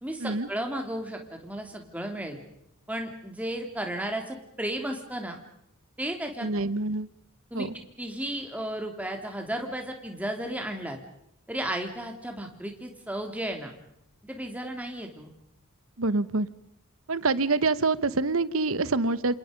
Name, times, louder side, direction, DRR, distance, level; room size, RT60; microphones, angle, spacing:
voice 1, 0.0-2.4 2.9-5.4 6.0-6.5 7.5-11.0 11.5-13.7 14.2-15.3, right 1 dB, 5° right, 3 dB, 3.1 m, -34 dB
voice 2, 6.4-7.1 7.5-7.7 16.0-16.5 17.1-19.4, right 3 dB, 65° right, 16 dB, 1.1 m, -26 dB
28.0 x 27.5 x 5.2 m, 0.78 s
head